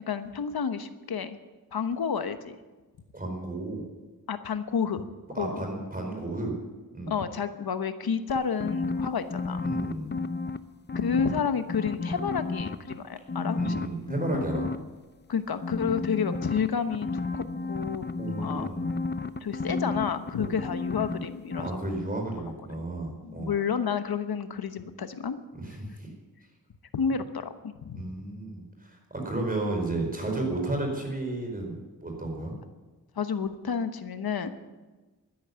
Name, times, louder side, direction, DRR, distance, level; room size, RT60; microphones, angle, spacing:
voice 1, 0.1-1.4 1.7-2.6 4.3-5.1 5.4-5.6 7.1-9.6 10.9-13.8 15.3-17.1 17.3-18.7 19.2-21.8 23.2-25.4 26.9-28.1 30.4-30.5 33.2-34.5, left 6 dB, 75° left, 10 dB, 1.1 m, -30 dB
voice 2, 3.1-3.9 5.3-6.5 6.9-7.1 9.6-10.1 13.6-14.7 18.2-18.9 20.4-20.6 21.6-23.5 25.5-26.1 27.9-32.5, right 2 dB, 25° right, 2 dB, 4.7 m, -33 dB
sound 1, 8.3-10.6 10.9-12.9 13.3-14.8 15.6-21.3 21.5-21.7, left 3 dB, 30° left, 0.6 m, -31 dB
12.5 x 11.0 x 9.5 m, 1.2 s
wide cardioid pair, 115°, 37 cm